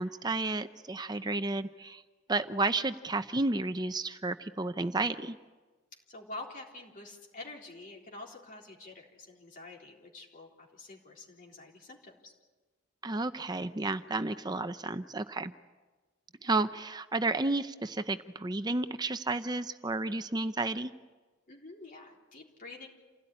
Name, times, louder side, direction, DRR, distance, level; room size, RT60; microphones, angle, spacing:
voice 1, 0.0-2.0 2.3-5.4 13.0-15.5 16.4-20.9, right 2 dB, 20° right, 10 dB, 0.7 m, -32 dB
voice 2, 6.1-12.3 21.5-22.9, left 2 dB, 45° left, -1 dB, 3.8 m, -47 dB
28.5 x 16.5 x 9.9 m, 1.3 s
head